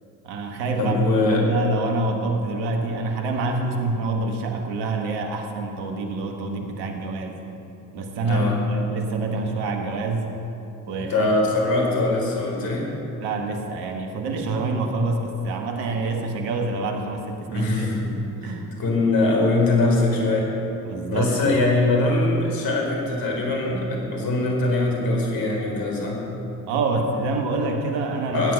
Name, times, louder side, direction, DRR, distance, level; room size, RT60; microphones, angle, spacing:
voice 1, 0.2-7.4 7.9-10.3 10.9-11.3 11.6-11.7 13.2-17.9 18.4-18.7 20.8-21.3 26.7-28.5, right 2 dB, 75° right, 3 dB, 1.7 m, -26 dB
voice 2, 0.8-1.4 8.3-8.6 11.0-12.9 17.5-18.5 18.8-20.5 21.1-26.2 28.3-28.5, left 2 dB, 60° left, 0 dB, 3.8 m, -22 dB
15.5 x 9.8 x 5.8 m, 3.0 s
hypercardioid pair, 50°, 40 cm